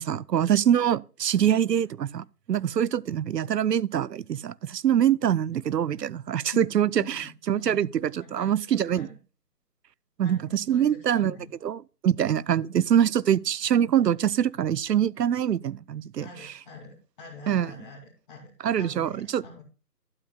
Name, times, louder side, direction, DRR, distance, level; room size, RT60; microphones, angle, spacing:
voice 1, 0.0-9.1 10.2-11.4 11.6-16.5 17.5-17.7 18.6-19.4, right 9 dB, 80° right, 0.6 m, -24 dB
voice 2, 7.0-9.1 10.2-11.5 16.2-18.5 18.8-19.6, left 3 dB, 30° left, 2.6 m, -45 dB
12.0 x 9.8 x 2.2 m
figure-of-eight pair, 155°, 48 cm